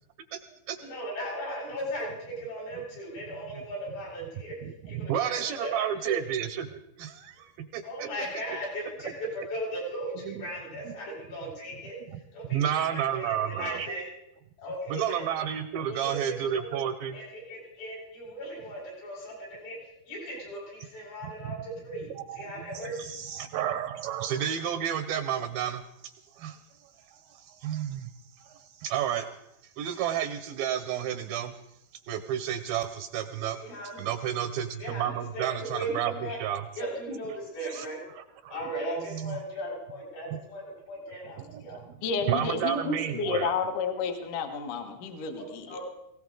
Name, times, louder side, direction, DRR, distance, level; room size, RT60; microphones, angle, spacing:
voice 1, 0.8-6.2 7.8-14.0 14.6-15.3 15.9-16.8 17.1-23.1 33.3-34.1 34.8-36.4 36.8-38.0 38.5-41.8 42.7-43.0 45.4-45.8, right 1 dB, 80° left, -5 dB, 9.2 m, -37 dB
voice 2, 4.9-8.1 10.3-10.4 12.5-13.9 14.9-17.2 21.2-21.5 22.2-29.3 29.8-31.6 32.1-33.6 34.0-36.1 36.4-36.6 37.7-37.9 38.2-38.5 39.1-39.4 40.3-40.4 41.5-41.6 42.3-43.6, right 10 dB, 80° right, 10 dB, 2.2 m, -31 dB
voice 3, 42.0-45.7, left 5 dB, 65° left, 5 dB, 2.4 m, -31 dB
19.0 x 17.5 x 3.8 m, 0.86 s
omnidirectional pair, 4.6 m